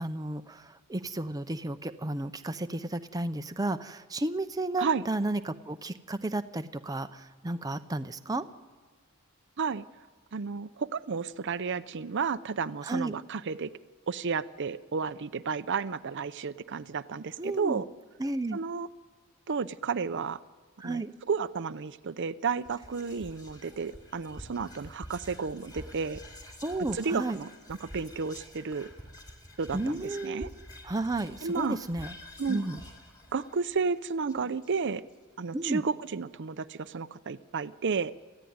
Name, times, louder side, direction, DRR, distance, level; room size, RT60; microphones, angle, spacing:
voice 1, 0.0-8.4 12.8-13.1 17.4-17.8 18.2-18.6 20.8-21.1 26.6-27.4 29.7-30.5 30.8-32.1 32.5-32.8 35.5-35.8, right 2 dB, 15° right, 8 dB, 0.7 m, -33 dB
voice 2, 10.3-13.7 14.1-17.9 18.5-18.9 19.5-20.4 20.8-26.2 26.9-28.9 29.6-30.5 31.4-31.8 32.4-32.6 33.3-35.0 35.4-38.1, right 5 dB, 55° right, 12 dB, 0.6 m, -32 dB
Whispering, 22.6-35.1, left 1 dB, 20° left, 3.0 m, -48 dB
28.0 x 15.0 x 9.5 m, 1.4 s
head